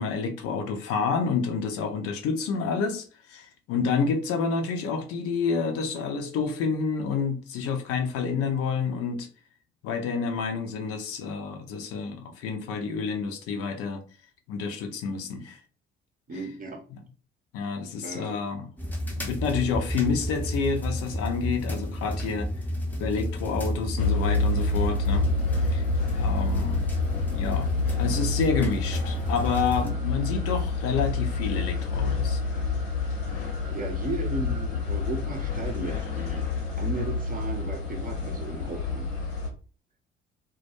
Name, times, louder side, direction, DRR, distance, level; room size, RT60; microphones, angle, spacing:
voice 1, 0.0-9.3 9.8-14.0 14.5-15.6 16.3-16.4 17.5-18.7 19.2-22.5 23.0-25.3 25.6-25.8 26.2-26.8 27.3-32.4, left 5 dB, 50° left, 0.6 m, -29 dB
voice 2, 16.3-16.8 18.0-18.4 33.7-36.5 36.8-39.1, right 3 dB, 30° right, 0.7 m, -35 dB
sound 1, 18.8-29.9, equal, 5° left, 0.7 m, -31 dB
sound 2, 24.0-39.5, left 4 dB, 70° left, 0.9 m, -28 dB
2.2 x 2.2 x 2.9 m
figure-of-eight pair, 50°, 30 cm